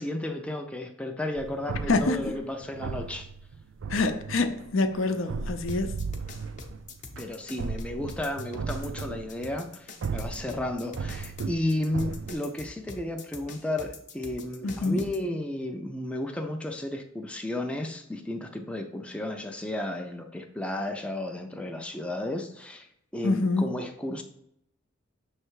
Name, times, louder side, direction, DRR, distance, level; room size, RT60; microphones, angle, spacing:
voice 1, 0.0-3.3 7.2-22.9 23.1-24.2, left 1 dB, 5° left, 0.4 m, -33 dB
sound 1, 1.4-9.6 10.0-12.3, right 4 dB, 70° right, 0.4 m, -36 dB
voice 2, 1.9-2.3 3.9-6.0 14.6-15.0 23.2-23.7, left 3 dB, 75° left, 0.6 m, -26 dB
sound 2, 5.7-15.2, left 3 dB, 40° left, 0.7 m, -44 dB
6.6 x 3.3 x 4.6 m
head